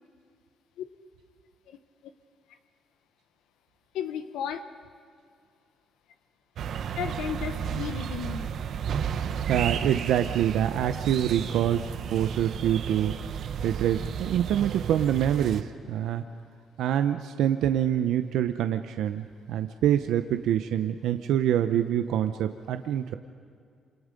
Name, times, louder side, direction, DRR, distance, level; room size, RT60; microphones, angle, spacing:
voice 1, 3.9-4.6 7.0-8.5, left 8 dB, 90° left, 9 dB, 1.2 m, -34 dB
sound 1, 6.6-15.6, right 8 dB, 65° right, 1.2 m, -33 dB
voice 2, 9.5-13.1 13.6-16.2 16.8-23.2, right 10 dB, 85° right, 8 dB, 0.8 m, -26 dB
28.5 x 27.0 x 5.3 m, 2.2 s
cardioid pair, 90°, 0 cm